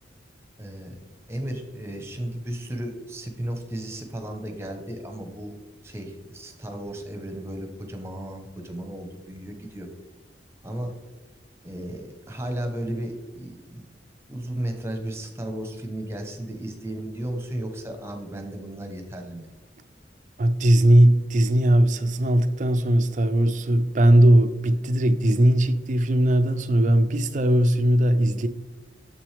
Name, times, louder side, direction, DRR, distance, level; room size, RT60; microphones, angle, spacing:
voice 1, 0.6-1.0 1.3-5.5 5.8-9.9 10.6-11.0 11.6-13.8 14.3-19.5, right 1 dB, 15° right, 0.9 m, -34 dB
voice 2, 20.4-28.5, right 1 dB, 45° right, 0.4 m, -19 dB
7.0 x 6.1 x 3.4 m
head